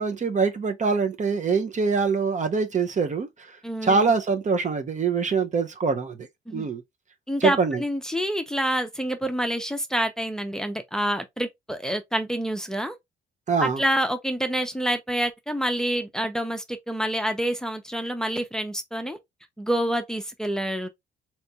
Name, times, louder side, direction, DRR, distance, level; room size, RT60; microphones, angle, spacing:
voice 1, 0.0-3.3 3.8-6.1 6.5-6.8 7.4-7.8 13.5-13.8, right 5 dB, 40° right, 0.7 m, -24 dB
voice 2, 3.6-4.1 6.5-6.7 7.3-13.0 13.6-19.2 19.6-20.9, equal, 5° left, 0.7 m, -27 dB
3.3 x 2.9 x 2.7 m
cardioid pair, 90°, 20 cm